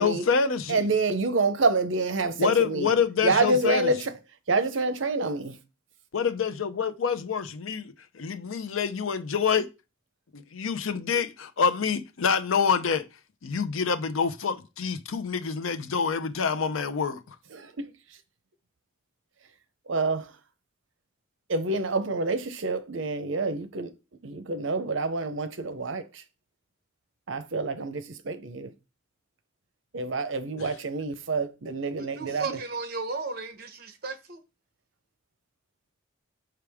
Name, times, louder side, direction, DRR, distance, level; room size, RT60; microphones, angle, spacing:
voice 1, 0.0-0.9 2.4-3.9 6.1-9.7 10.3-13.0 13.4-17.2 30.6-30.7, left 6 dB, 85° left, 0.6 m, -27 dB
voice 2, 0.7-2.9 3.2-4.2 4.5-5.6 17.5-17.9 19.9-20.3 21.5-23.9 24.2-26.2 27.3-28.7 29.9-32.6, right 3 dB, 70° right, 0.7 m, -27 dB
voice 3, 32.0-34.4, right 4 dB, 50° right, 0.9 m, -35 dB
5.8 x 4.8 x 3.5 m
head